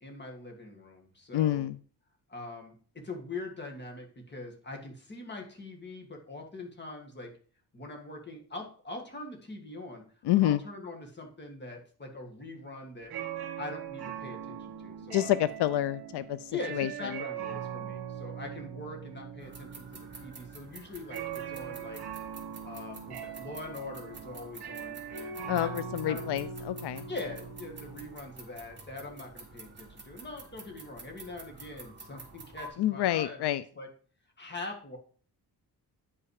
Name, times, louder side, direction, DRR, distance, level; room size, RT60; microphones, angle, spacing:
voice 1, 0.0-1.7 2.3-7.3 7.7-10.1 10.4-13.1 13.6-15.3 16.5-22.0 22.6-25.7 26.0-26.3 27.1-33.9 34.4-35.0, left 2 dB, 25° left, 1 dB, 1.9 m, -43 dB
voice 2, 1.3-1.8 10.2-10.6 15.1-17.2 25.5-27.1 32.8-33.6, left 13 dB, 85° left, 15 dB, 0.5 m, -28 dB
sound 1, 13.0-28.1, right 8 dB, 70° right, 1.3 m, -41 dB
sound 2, 19.4-32.7, right 3 dB, 30° right, 2.1 m, -49 dB
9.5 x 5.6 x 4.8 m, 0.43 s
wide cardioid pair, 165°, 39 cm